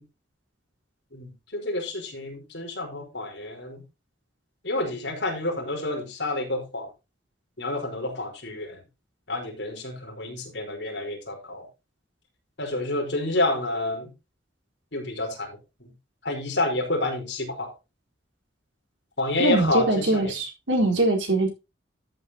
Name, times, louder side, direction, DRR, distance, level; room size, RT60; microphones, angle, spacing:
voice 1, 1.1-3.8 4.6-6.9 7.6-8.8 9.3-11.7 12.6-14.1 14.9-15.5 15.8-15.9 16.2-17.7 19.2-20.3 20.9-21.0, left 2 dB, 65° left, 2 dB, 4.6 m, -29 dB
voice 2, 19.4-21.5, right 2 dB, 80° right, 2 dB, 4.4 m, -22 dB
13.5 x 8.2 x 2.9 m, 0.26 s
head